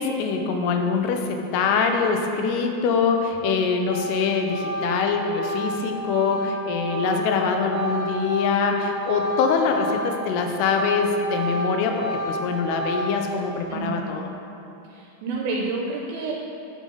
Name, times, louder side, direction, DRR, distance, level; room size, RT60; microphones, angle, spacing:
voice 1, 0.0-14.3, left 5 dB, 90° left, 4 dB, 2.7 m, -24 dB
Organ, 3.3-3.6 3.9-10.2 10.5-13.4, equal, 60° right, 2.2 m, -30 dB
voice 2, 13.7-14.1 14.9-16.3, right 3 dB, 80° right, -2 dB, 2.4 m, -29 dB
8.3 x 6.4 x 3.8 m, 2.9 s
omnidirectional pair, 4.6 m